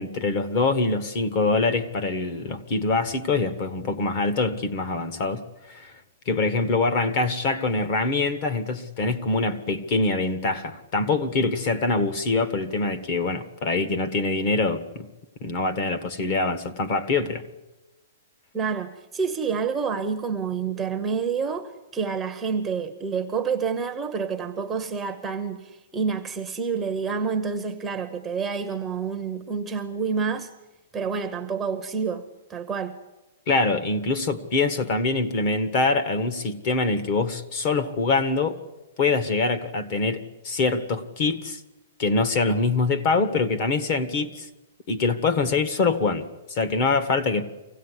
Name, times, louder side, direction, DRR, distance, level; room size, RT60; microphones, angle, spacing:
voice 1, 0.0-5.9 6.2-15.1 15.4-17.4 33.5-38.6 39.0-41.6 42.0-44.5 44.9-47.4, left 3 dB, 35° left, 1.6 m, -24 dB
voice 2, 18.5-30.5 30.9-33.0, right 5 dB, 10° right, 0.9 m, -28 dB
24.5 x 16.5 x 9.9 m
hypercardioid pair, 170°, 0 cm